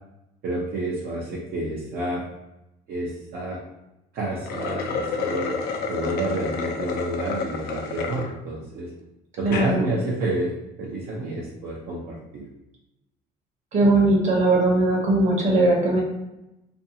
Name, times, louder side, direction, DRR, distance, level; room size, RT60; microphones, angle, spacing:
voice 1, 0.4-2.2 2.9-3.6 4.1-5.6 5.9-8.9 9.4-12.5, right 2 dB, 65° right, -5 dB, 0.6 m, -29 dB
sound 1, 4.3-8.3 8.8-8.9 9.4-9.7, left 5 dB, 70° left, 0.5 m, -30 dB
voice 2, 9.4-9.9 13.7-16.0, right 2 dB, 45° right, -2 dB, 0.9 m, -19 dB
2.6 x 2.3 x 2.7 m, 0.92 s
cardioid pair, 105°, 17 cm